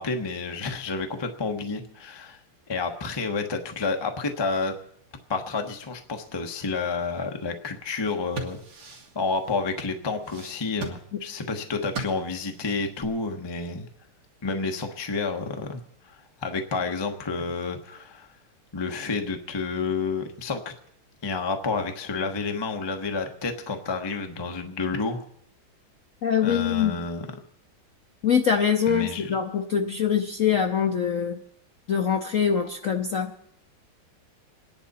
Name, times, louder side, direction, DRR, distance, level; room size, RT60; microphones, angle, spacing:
voice 1, 0.0-2.4 2.7-4.7 5.3-8.6 9.1-13.9 14.4-15.8 16.0-18.3 18.7-20.7 21.2-25.2 26.4-27.4 28.9-29.4, left 4 dB, 30° left, 5 dB, 0.5 m, -30 dB
sound 1, 8.0-13.0, right 4 dB, 60° right, 2.6 m, -39 dB
voice 2, 26.2-26.9 28.2-31.4 31.9-33.3, left 7 dB, 70° left, 4 dB, 0.7 m, -23 dB
28.5 x 10.5 x 4.1 m, 0.75 s
omnidirectional pair, 2.3 m